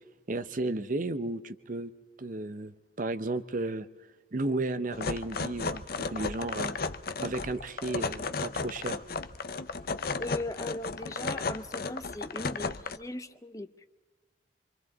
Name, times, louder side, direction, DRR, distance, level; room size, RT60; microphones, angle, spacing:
voice 1, 0.3-1.9 2.2-3.9 4.3-6.7 7.2-9.0, right 2 dB, 45° right, 0.7 m, -33 dB
sound 1, 4.9-13.0, left 4 dB, 55° left, 0.7 m, -34 dB
voice 2, 10.2-13.9, left 1 dB, 20° left, 0.6 m, -38 dB
26.0 x 25.5 x 4.0 m
head